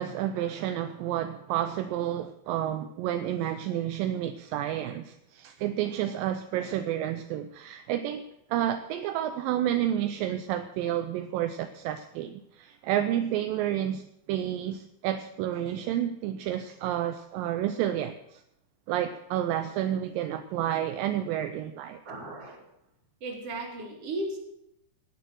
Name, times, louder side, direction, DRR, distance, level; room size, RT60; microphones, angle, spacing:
voice 1, 0.0-18.4 18.9-22.0, right 11 dB, 80° right, 8 dB, 2.3 m, -30 dB
voice 2, 22.0-22.6 23.2-24.4, right 2 dB, 45° right, 1 dB, 3.3 m, -35 dB
19.0 x 7.0 x 6.3 m, 0.82 s
omnidirectional pair, 4.1 m